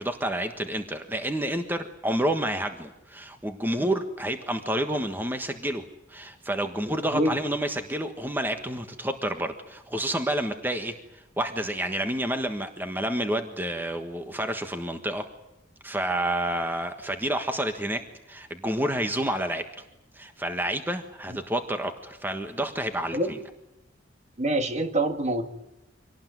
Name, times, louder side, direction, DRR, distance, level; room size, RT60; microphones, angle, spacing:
voice 1, 0.0-5.8 6.1-15.2 15.8-18.0 18.3-19.7 20.1-23.4, right 1 dB, 10° right, 6 dB, 1.4 m, -29 dB
voice 2, 24.4-25.5, right 1 dB, 35° right, 7 dB, 1.9 m, -25 dB
25.5 x 18.0 x 9.5 m, 0.97 s
head